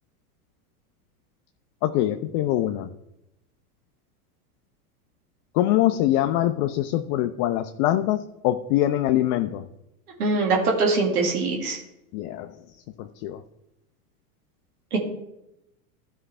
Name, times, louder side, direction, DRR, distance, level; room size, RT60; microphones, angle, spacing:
voice 1, 1.8-2.9 5.5-9.6 12.1-12.5 13.0-13.4, left 13 dB, 45° left, 7 dB, 0.6 m, -23 dB
voice 2, 10.2-11.8 14.9-15.0, right 3 dB, 80° right, 0 dB, 2.1 m, -22 dB
13.0 x 5.5 x 3.4 m, 0.88 s
hypercardioid pair, 100°, 45 cm